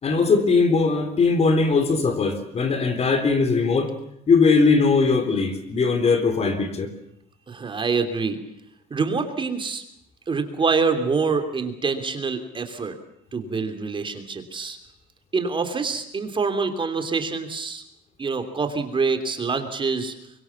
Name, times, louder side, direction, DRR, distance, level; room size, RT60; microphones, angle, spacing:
voice 1, 0.0-3.9 4.3-6.9, left 4 dB, 40° left, 8 dB, 3.7 m, -20 dB
voice 2, 7.5-8.4 8.9-9.8 10.3-12.9 13.3-14.8 15.3-17.8 18.2-20.1, right 4 dB, 30° right, 7 dB, 3.2 m, -25 dB
24.0 x 23.0 x 7.2 m, 0.75 s
cardioid pair, 110°, 17 cm